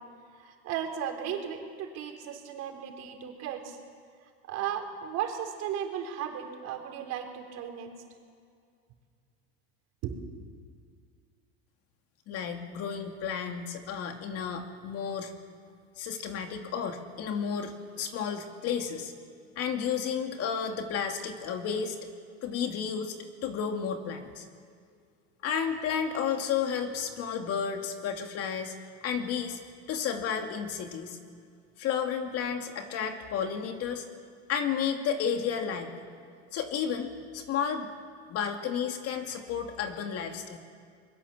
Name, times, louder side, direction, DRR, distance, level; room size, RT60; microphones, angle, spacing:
voice 1, 0.3-3.8 4.5-7.9 10.0-10.3, right 9 dB, 50° right, 3 dB, 4.0 m, -35 dB
voice 2, 12.3-15.3 16.0-19.1 19.6-22.0 22.4-23.2 23.4-24.4 25.4-28.7 29.0-29.6 29.9-31.2 31.8-34.0 34.5-35.9 36.5-37.9 38.3-40.6, left 7 dB, 50° left, 5 dB, 2.6 m, -32 dB
24.0 x 22.0 x 7.3 m, 2.2 s
supercardioid pair, 120°, 32 cm